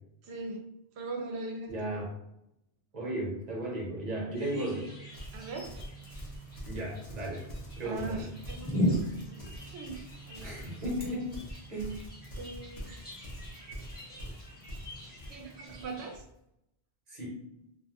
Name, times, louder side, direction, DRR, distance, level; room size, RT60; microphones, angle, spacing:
voice 1, 0.2-0.7 1.0-2.1 5.3-5.8 7.8-10.8 11.0-11.2 12.4-13.0 15.3-16.2, right 2 dB, 85° right, 2 dB, 0.8 m, -41 dB
voice 2, 1.7-2.1 2.9-4.9 6.6-7.4 7.8-8.3 10.4-11.4 11.7-12.0 17.1-17.4, right 1 dB, 45° right, -4 dB, 0.9 m, -35 dB
sound 1, 4.3-16.2, equal, 10° left, 0.8 m, -39 dB
Livestock farm animals working animals, 5.1-16.3, equal, 40° left, 0.7 m, -45 dB
2.4 x 2.2 x 2.8 m, 0.80 s
omnidirectional pair, 1.1 m